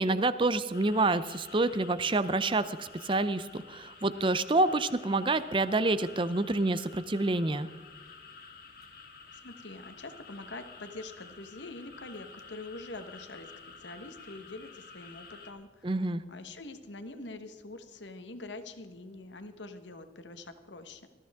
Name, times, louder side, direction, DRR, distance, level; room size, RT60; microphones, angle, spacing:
voice 1, 0.0-7.7 15.8-16.2, right 2 dB, 30° right, 14 dB, 0.6 m, -28 dB
sound 1, 0.7-15.5, left 4 dB, 55° left, 1.9 m, -50 dB
voice 2, 9.3-16.0 16.3-21.1, left 2 dB, 85° left, 9 dB, 1.3 m, -45 dB
20.0 x 14.0 x 3.6 m, 1.4 s
head